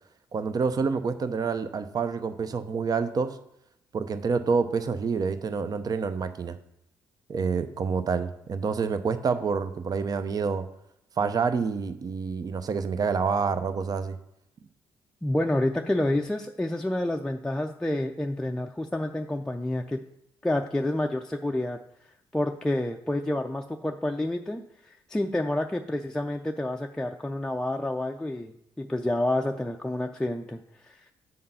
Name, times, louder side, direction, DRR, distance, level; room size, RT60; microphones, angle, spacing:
voice 1, 0.3-3.4 3.9-6.6 7.3-10.6 11.2-14.2, right 5 dB, 45° right, 11 dB, 0.6 m, -27 dB
voice 2, 15.2-20.0 20.4-21.8 22.3-28.5 28.8-31.0, left 1 dB, 10° left, 3 dB, 0.4 m, -29 dB
7.8 x 3.7 x 5.5 m, 0.80 s
supercardioid pair, 65°, 9 cm